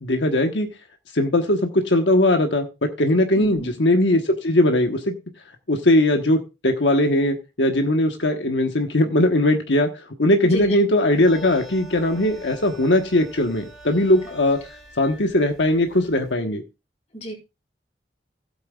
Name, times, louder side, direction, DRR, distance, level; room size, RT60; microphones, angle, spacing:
voice 1, 0.0-0.7 1.1-5.1 5.7-14.6 15.0-16.6, left 1 dB, 90° left, 4 dB, 1.2 m, -20 dB
voice 2, 3.4-3.7 10.4-10.7 17.1-17.3, right 1 dB, 35° left, 1 dB, 4.3 m, -31 dB
sound 1, 11.1-16.3, right 1 dB, ahead, 2.4 m, -45 dB
15.5 x 8.6 x 2.4 m, 0.27 s
head